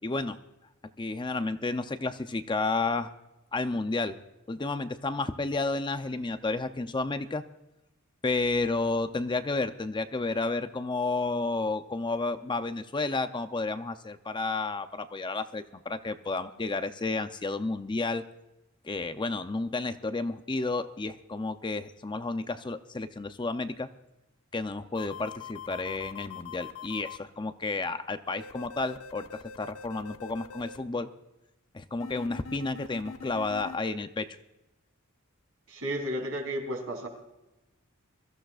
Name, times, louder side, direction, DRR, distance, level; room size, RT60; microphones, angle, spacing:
voice 1, 0.0-0.4 1.0-3.1 3.5-4.2 4.5-7.4 8.2-18.3 18.8-23.9 24.5-31.1 31.7-34.3, left 3 dB, 20° left, 9 dB, 0.5 m, -31 dB
sound 1, 25.0-27.2 28.4-30.8 32.0-33.8, left 6 dB, 85° left, 0.9 m, -43 dB
voice 2, 35.7-37.1, equal, 70° right, 3 dB, 3.4 m, -33 dB
23.0 x 14.0 x 2.4 m, 0.97 s
head